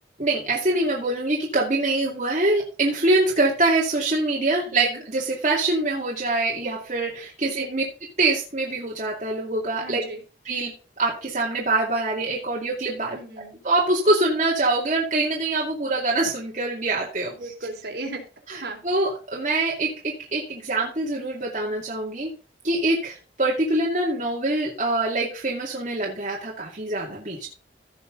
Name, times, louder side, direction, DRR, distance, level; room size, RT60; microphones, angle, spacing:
voice 1, 0.2-7.8 8.2-10.0 10.4-10.7 11.0-13.2 13.6-17.5 18.5-22.3 22.6-27.5, right 2 dB, 45° right, -4 dB, 2.4 m, -24 dB
voice 2, 4.7-5.0 7.5-7.7 9.8-10.2 13.1-13.6 17.3-18.2 18.6-18.8, right 2 dB, 60° right, 1 dB, 3.5 m, -36 dB
16.0 x 5.8 x 3.9 m, 0.36 s
head